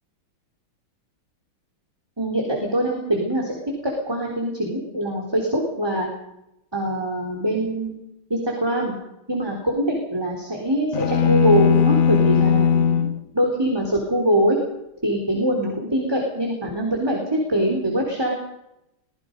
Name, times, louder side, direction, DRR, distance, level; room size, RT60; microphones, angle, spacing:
voice 1, 2.2-3.6 3.8-6.1 6.7-7.9 8.3-8.9 9.3-13.1 13.3-14.6 15.0-18.3, right 1 dB, 10° right, 0 dB, 3.7 m, -23 dB
sound 1, 10.9-13.2, left 7 dB, 50° left, 1.3 m, -18 dB
24.0 x 20.5 x 5.3 m, 0.85 s
omnidirectional pair, 2.2 m